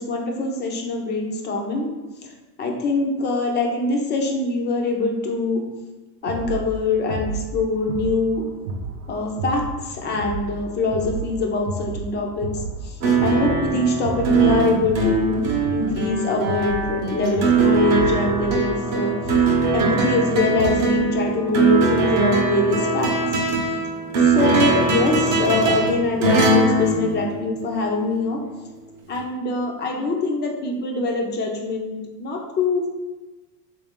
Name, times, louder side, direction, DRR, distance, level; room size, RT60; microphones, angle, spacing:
voice 1, 0.0-1.9 2.2-2.3 2.6-5.6 6.2-8.5 9.1-12.5 12.8-15.4 15.7-19.1 19.7-23.1 24.2-28.4 29.1-32.9, left 3 dB, 25° left, 1 dB, 0.4 m, -23 dB
sound 1, 6.2-21.0, right 3 dB, 90° right, 0.6 m, -33 dB
sound 2, 13.0-27.9 29.2-29.3, right 3 dB, 35° right, 0.7 m, -21 dB
3.4 x 2.6 x 3.6 m, 1.2 s
supercardioid pair, 135°, 46 cm